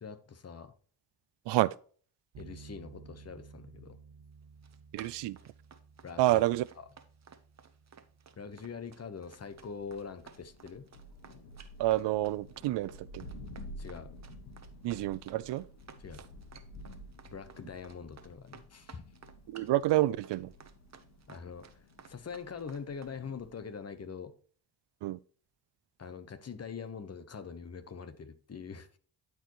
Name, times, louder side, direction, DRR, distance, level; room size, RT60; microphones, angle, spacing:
voice 1, 0.0-0.7 2.4-4.0 6.0-6.4 8.4-10.9 13.8-14.1 16.0-16.2 17.3-19.0 21.3-24.3 26.0-28.9, left 6 dB, 35° left, 1.1 m, -43 dB
voice 2, 1.5-1.8 4.9-5.4 6.2-6.7 11.8-13.3 14.8-15.7 19.5-20.5 25.0-25.2, right 16 dB, 90° right, 0.5 m, -29 dB
sound 1, 2.3-10.5, right 5 dB, 70° right, 1.4 m, -56 dB
Run, 4.4-23.2, right 6 dB, 40° right, 1.0 m, -55 dB
Thunder, 9.2-23.8, equal, 80° left, 1.9 m, -51 dB
12.5 x 4.7 x 3.1 m
cardioid pair, 90°, 40 cm